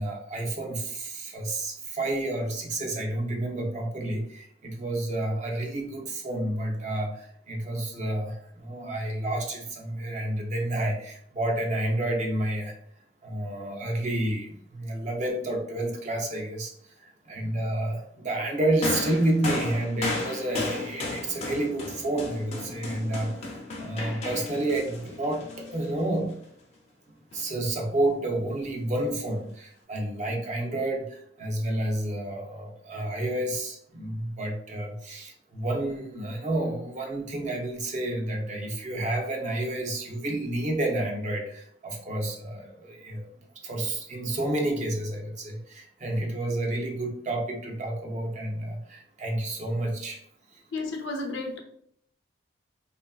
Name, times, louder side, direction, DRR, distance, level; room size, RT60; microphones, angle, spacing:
voice 1, 0.0-12.8 13.2-26.3 27.1-43.3 43.6-50.2 50.5-50.6, right 1 dB, 40° right, 1 dB, 0.5 m, -30 dB
sound 1, 18.8-26.3 27.3-27.5, left 2 dB, 35° left, 0.5 m, -34 dB
voice 2, 50.7-51.6, left 2 dB, 80° left, 1 dB, 0.6 m, -32 dB
2.9 x 2.5 x 2.3 m, 0.68 s
head